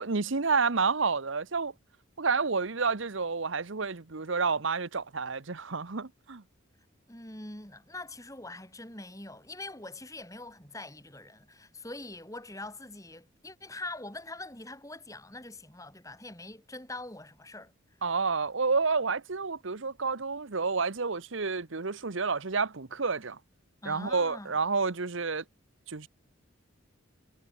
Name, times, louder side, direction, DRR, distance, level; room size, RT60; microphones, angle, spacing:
voice 1, 0.0-1.7 2.2-6.4 18.0-23.4 23.8-25.4 25.9-26.1, right 4 dB, 70° right, 1.0 m, -29 dB
voice 2, 7.1-17.7 23.8-24.6, left 2 dB, 15° left, 7.8 m, -43 dB
head